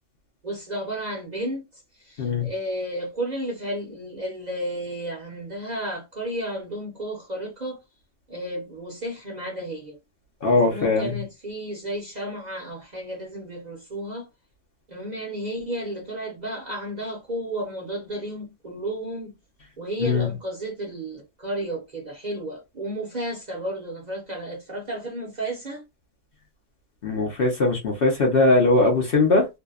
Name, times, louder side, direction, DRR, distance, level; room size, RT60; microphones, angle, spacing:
voice 1, 0.4-1.6 2.0-7.8 8.3-10.0 10.6-14.3 14.9-19.3 19.8-25.8, right 1 dB, 40° right, 0.7 m, -32 dB
voice 2, 10.4-11.1 20.0-20.3 27.0-29.5, left 2 dB, 55° left, 0.7 m, -20 dB
2.6 x 2.1 x 2.3 m
omnidirectional pair, 1.4 m